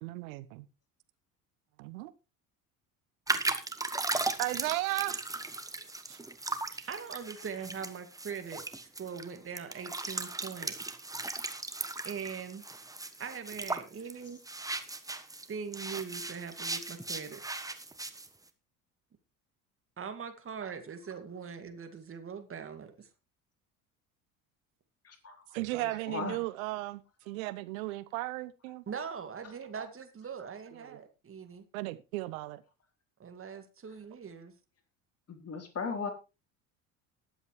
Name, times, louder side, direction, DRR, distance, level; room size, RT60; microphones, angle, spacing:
voice 1, 0.0-0.7 1.8-2.1 4.4-5.2 6.1-6.2 6.7-6.9 25.5-28.8 30.8-31.0 31.7-32.6, right 18 dB, 65° right, 1.0 m, -35 dB
sound 1, 3.3-15.5 15.7-18.3, right 2 dB, 10° right, 1.2 m, -37 dB
voice 2, 6.9-8.6 9.0-10.7 12.0-12.6 13.2-14.4 15.5-17.4 20.0-23.1 28.9-31.6 33.2-34.5, right 6 dB, 30° right, 2.3 m, -41 dB
voice 3, 25.0-26.4 35.3-36.1, left 5 dB, 35° left, 3.6 m, -38 dB
19.5 x 8.1 x 3.2 m
figure-of-eight pair, 65°, 45 cm